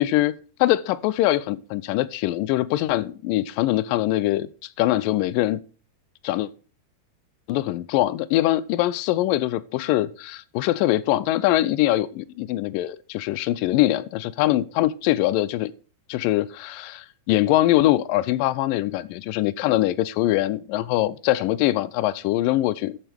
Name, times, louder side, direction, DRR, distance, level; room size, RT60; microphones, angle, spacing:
voice 1, 0.0-5.6 6.2-6.5 7.5-15.7 16.1-23.0, left 15 dB, 85° left, 2.3 m, -23 dB
13.0 x 7.5 x 3.5 m
omnidirectional pair, 3.9 m